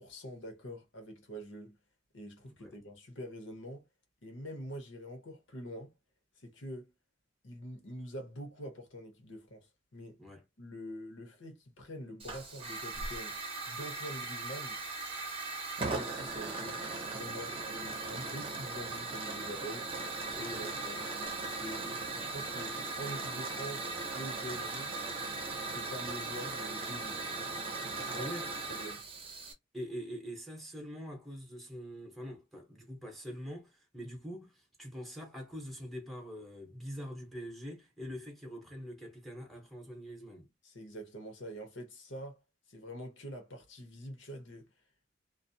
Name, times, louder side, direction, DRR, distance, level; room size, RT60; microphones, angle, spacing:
voice 1, 0.0-1.8 2.1-3.8 4.2-5.9 6.4-6.9 7.4-10.2 10.6-13.4 13.7-14.8 15.8-16.9 17.1-19.9 20.4-21.1 21.6-23.9 24.1-24.9 25.6-27.3 28.0-28.3 28.7-29.0 40.6-42.4 42.7-44.7, equal, 80° left, 0.9 m, -45 dB
Hiss / Fire, 12.2-29.5, right 3 dB, 30° right, 0.6 m, -38 dB
voice 2, 20.3-20.6 28.1-28.5 29.7-40.5, equal, ahead, 0.8 m, -44 dB
2.4 x 2.0 x 2.6 m
head